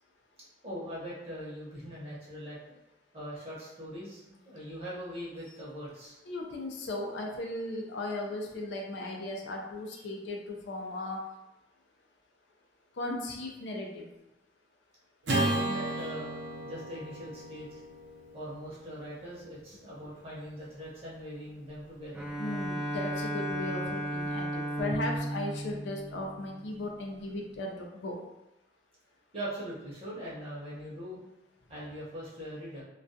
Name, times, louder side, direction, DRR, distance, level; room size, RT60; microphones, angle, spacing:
voice 1, 0.6-2.6 3.1-6.2 9.9-10.0 15.3-16.3 16.6-17.8 18.3-22.3 29.3-31.2 31.7-32.8, equal, 30° right, -7 dB, 0.8 m, -41 dB
voice 2, 6.3-11.2 13.0-14.1 22.3-28.2, left 2 dB, 70° left, 1 dB, 0.4 m, -36 dB
Acoustic guitar / Strum, 15.2-19.7, right 1 dB, 75° right, 0.7 m, -34 dB
Bowed string instrument, 22.1-26.8, right 1 dB, 5° right, 0.3 m, -35 dB
2.3 x 2.2 x 2.6 m, 0.93 s
head